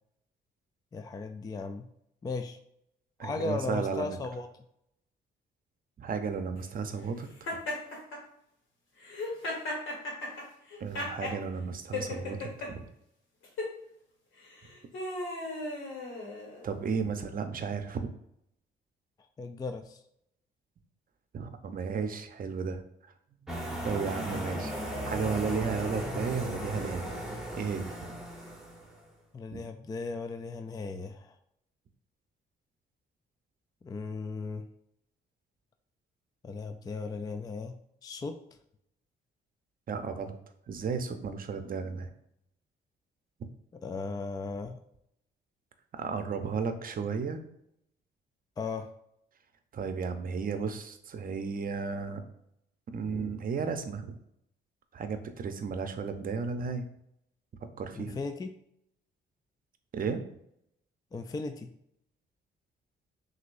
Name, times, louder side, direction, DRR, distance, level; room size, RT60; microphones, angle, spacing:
voice 1, 0.9-1.9 2.2-2.6 3.2-4.5 19.4-20.0 29.3-31.4 33.8-34.7 36.4-37.8 38.0-38.4 43.8-44.8 48.6-48.9 58.0-58.6 61.1-61.7, left 4 dB, 20° left, 7 dB, 0.3 m, -36 dB
voice 2, 3.2-4.2 6.0-7.5 10.8-12.8 16.6-18.1 21.3-22.8 23.8-27.1 27.6-28.2 29.5-29.6 39.9-40.4 40.7-42.1 45.9-47.4 49.7-52.2 52.9-54.2 54.9-56.9 57.8-58.2 59.9-60.2, right 5 dB, 45° right, 8 dB, 0.6 m, -34 dB
Laughter, 7.5-8.2 9.0-11.4 11.9-12.7 13.4-13.7 14.5-16.7, left 2 dB, 80° left, 1.5 m, -36 dB
sound 1, 23.5-29.0, equal, ahead, 1.1 m, -36 dB
6.0 x 2.7 x 2.6 m, 0.74 s
cardioid pair, 90°, 20 cm